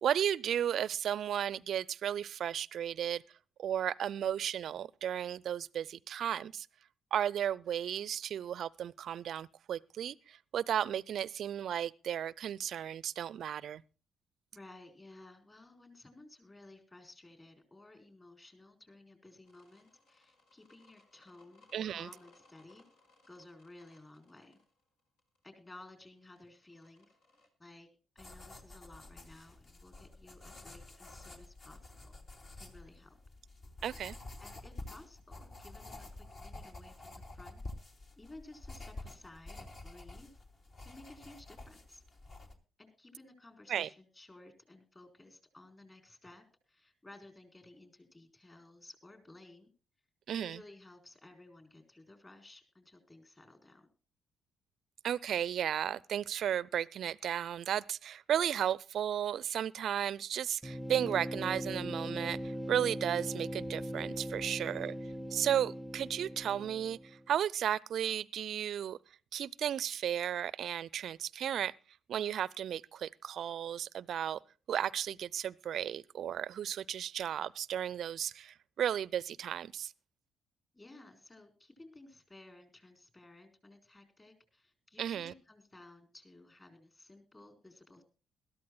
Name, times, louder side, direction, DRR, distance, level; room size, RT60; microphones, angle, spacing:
voice 1, 0.0-3.2 3.6-6.7 7.1-13.8 21.7-22.1 33.8-34.2 43.7-43.9 50.3-50.6 55.0-64.9 65.3-69.0 69.3-71.7 72.1-74.4 74.7-79.9 85.0-85.3, right 10 dB, 60° right, 0.5 m, -34 dB
voice 2, 14.5-22.8 23.3-24.6 25.4-27.1 27.6-27.9 28.1-32.1 32.6-33.2 34.4-36.1 36.4-37.6 38.2-40.3 40.8-42.0 42.8-49.7 50.3-53.9 64.4-65.0 80.7-88.0, left 2 dB, 25° left, 4.3 m, -56 dB
sound 1, 19.4-27.5, left 2 dB, 75° left, 4.5 m, -66 dB
sound 2, 28.2-42.5, left 2 dB, 50° left, 2.8 m, -49 dB
sound 3, 60.6-67.3, equal, ahead, 0.7 m, -40 dB
21.5 x 13.5 x 2.3 m
hypercardioid pair, 45°, 0 cm